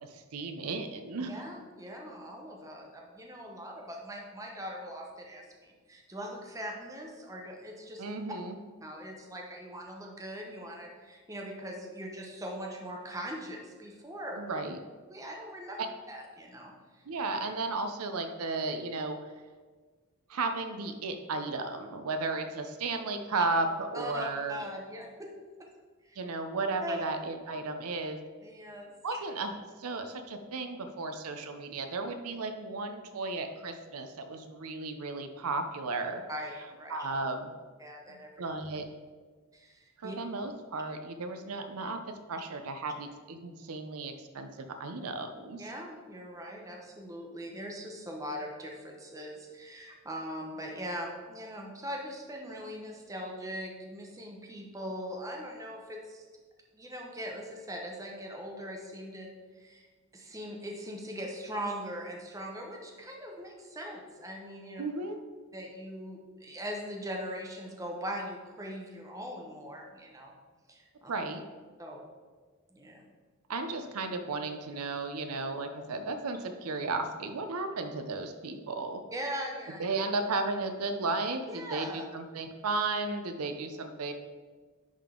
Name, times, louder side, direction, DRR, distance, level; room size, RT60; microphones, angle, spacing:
voice 1, 0.0-1.3 8.0-8.5 14.4-14.8 15.8-15.9 17.1-19.2 20.3-24.6 26.2-28.2 29.0-36.2 36.9-37.5 38.1-38.9 40.0-42.0 42.3-45.7 64.8-65.2 71.1-71.4 73.5-79.0 79.8-84.1, right 3 dB, 80° right, 7 dB, 0.6 m, -34 dB
voice 2, 1.2-8.0 8.8-14.4 15.1-15.8 16.1-17.0 23.9-25.3 26.0-26.2 26.8-27.0 28.4-28.9 36.3-37.0 37.8-38.3 39.5-40.1 45.6-56.2 56.7-59.3 59.6-59.9 60.1-64.8 65.5-70.3 70.7-71.1 71.8-72.0 72.7-73.0 79.1-79.8 81.5-82.1, equal, 15° right, 0 dB, 0.8 m, -41 dB
10.5 x 3.6 x 3.7 m, 1.4 s
head